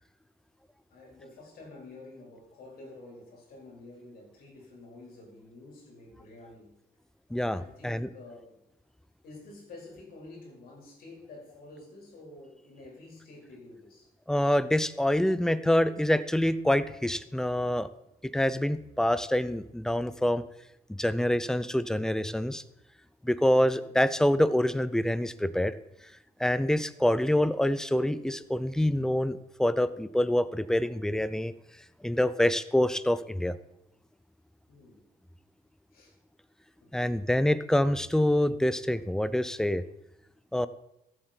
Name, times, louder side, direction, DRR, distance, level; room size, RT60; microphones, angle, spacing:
voice 1, 0.9-6.7 7.6-8.6 9.2-14.1 23.8-23.9 34.7-35.0 35.9-36.2 36.8-37.2, left 2 dB, 60° left, -1 dB, 4.5 m, -49 dB
voice 2, 7.3-8.1 14.3-17.9 18.3-20.4 21.0-22.6 23.2-25.7 26.4-31.5 32.0-33.6 36.9-39.8 40.5-40.7, left 1 dB, 5° left, 15 dB, 0.5 m, -26 dB
14.5 x 7.6 x 4.5 m, 0.86 s
cardioid pair, 110°, 17 cm